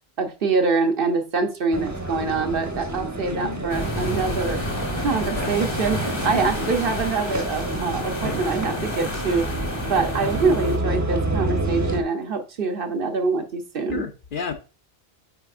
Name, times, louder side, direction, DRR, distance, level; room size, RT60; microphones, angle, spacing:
voice 1, 0.2-4.6 5.0-9.5 9.9-14.1, right 4 dB, 60° right, 6 dB, 1.0 m, -24 dB
sound 1, 1.7-12.0, right 2 dB, 15° right, 0.9 m, -29 dB
voice 2, 3.3-3.7 5.1-5.6 6.2-6.8 13.9-14.5, left 6 dB, 55° left, 6 dB, 0.9 m, -32 dB
sound 2, 3.7-10.8, left 1 dB, 25° left, 1.1 m, -30 dB
9.1 x 4.5 x 2.5 m, 0.32 s
omnidirectional pair, 1.1 m